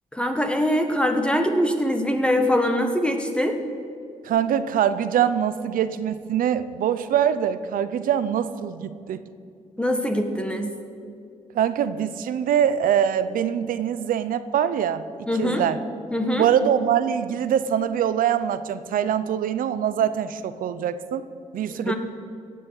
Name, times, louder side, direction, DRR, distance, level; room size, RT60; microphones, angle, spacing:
voice 1, 0.1-3.5 9.8-10.7 15.3-15.6 16.1-16.5 21.7-21.9, equal, 5° left, 5 dB, 1.4 m, -23 dB
voice 2, 4.2-9.2 11.5-15.8 16.4-21.3 21.5-21.9, right 9 dB, 85° right, 13 dB, 0.6 m, -23 dB
16.5 x 6.9 x 8.0 m, 2.3 s
cardioid pair, 70°, 14 cm